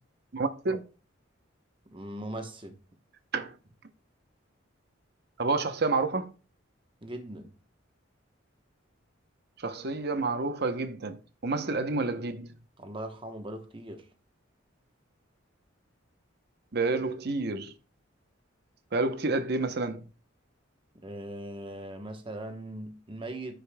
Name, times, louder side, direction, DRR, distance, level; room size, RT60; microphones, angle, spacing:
voice 1, 0.3-0.8 3.3-3.6 5.4-6.3 9.6-12.5 16.7-17.7 18.9-20.0, right 3 dB, 55° right, 0.8 m, -29 dB
voice 2, 1.9-2.8 7.0-7.5 12.8-14.1 21.0-23.5, right 1 dB, 25° right, 1.0 m, -39 dB
15.0 x 5.1 x 2.2 m
head